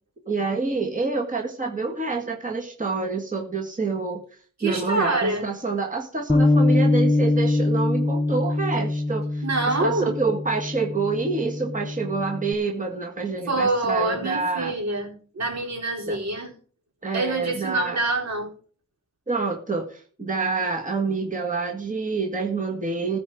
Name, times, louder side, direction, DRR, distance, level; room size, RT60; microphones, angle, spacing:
voice 1, 0.3-4.2 4.6-14.7 16.1-16.2 17.0-18.0 19.3-23.2, right 4 dB, 25° right, 0 dB, 2.0 m, -27 dB
voice 2, 4.6-5.4 9.4-10.2 13.5-16.5 17.1-18.5, right 2 dB, 60° right, 0 dB, 4.5 m, -26 dB
Bass guitar, 6.3-12.5, left 2 dB, 15° left, 0.9 m, -23 dB
14.5 x 5.0 x 7.8 m, 0.43 s
wide cardioid pair, 80°, 30 cm